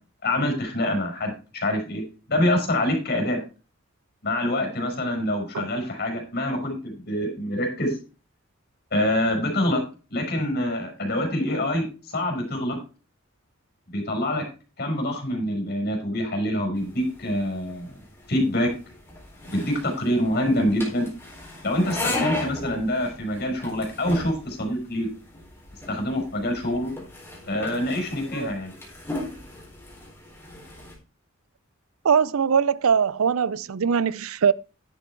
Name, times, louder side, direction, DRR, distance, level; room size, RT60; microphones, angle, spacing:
voice 1, 0.2-2.0 2.3-3.4 4.2-7.9 8.9-9.8 10.1-12.8 13.9-14.4 14.8-17.9 18.3-18.7 19.5-21.1 21.6-25.1 25.9-26.9 27.5-28.7, left 1 dB, 50° left, 5.2 m, -25 dB
sound 1, 16.7-30.9, left 1 dB, 10° left, 4.3 m, -36 dB
voice 2, 32.0-34.5, right 6 dB, 85° right, 0.5 m, -21 dB
11.0 x 7.6 x 4.5 m
head